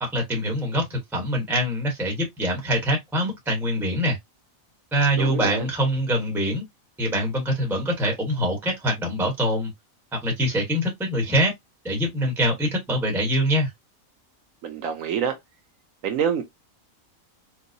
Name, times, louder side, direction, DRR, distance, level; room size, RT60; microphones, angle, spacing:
voice 1, 0.0-4.2 4.9-6.6 7.0-9.7 10.1-11.5 11.8-13.7, equal, ahead, 0.9 m, -24 dB
voice 2, 5.2-5.7 14.6-15.4 16.0-16.4, right 7 dB, 80° right, 1.1 m, -26 dB
4.6 x 2.0 x 2.6 m
omnidirectional pair, 1.4 m